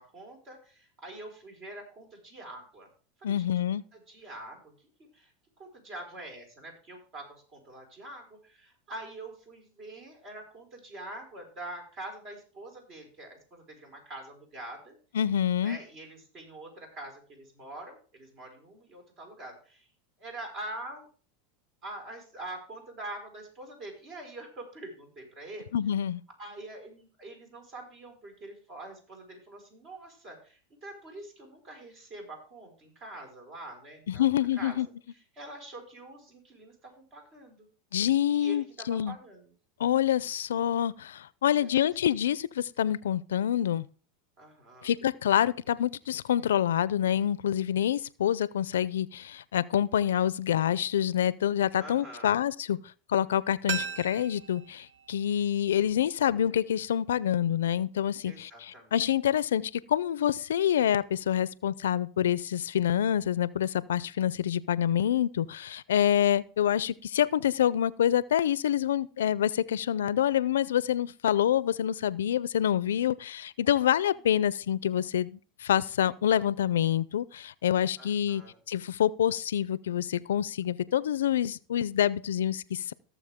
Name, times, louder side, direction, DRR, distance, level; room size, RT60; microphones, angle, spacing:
voice 1, 0.0-2.9 3.2-5.3 5.6-15.0 15.6-19.9 20.2-21.1 21.8-25.7 26.4-34.8 35.1-37.7 38.3-39.5 41.6-42.1 44.4-44.9 51.8-52.4 58.2-59.0 74.1-74.3 78.0-78.6, right 1 dB, 45° right, 5.3 m, -45 dB
voice 2, 3.2-3.8 15.1-15.8 25.7-26.2 34.1-34.9 37.9-39.1 39.8-43.9 44.8-52.8 53.1-78.4 78.7-82.9, left 10 dB, 90° left, 0.4 m, -27 dB
sound 1, 53.7-56.5 56.8-56.9, right 7 dB, 75° right, 1.1 m, -39 dB
17.5 x 7.2 x 3.6 m
hypercardioid pair, 110°, 0 cm